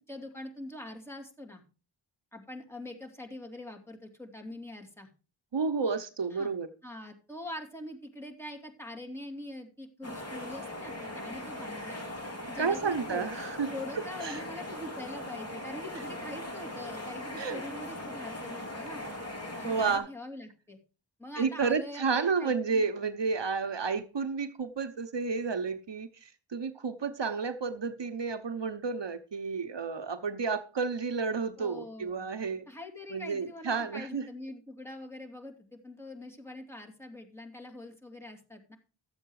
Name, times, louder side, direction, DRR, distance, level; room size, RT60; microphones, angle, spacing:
voice 1, 0.0-1.6 2.3-5.1 6.3-6.5 6.8-12.0 12.5-13.3 13.7-19.0 19.6-20.8 21.2-22.9 31.6-32.2 32.7-38.8, left 1 dB, 5° left, 2.7 m, -43 dB
voice 2, 5.5-6.7 12.6-13.7 14.2-14.4 17.4-17.6 19.6-20.1 21.4-32.7 33.1-34.2, right 5 dB, 70° right, 1.0 m, -31 dB
sound 1, 10.0-20.0, left 1 dB, 35° left, 3.4 m, -40 dB
12.5 x 7.8 x 4.8 m
wide cardioid pair, 55°, 45 cm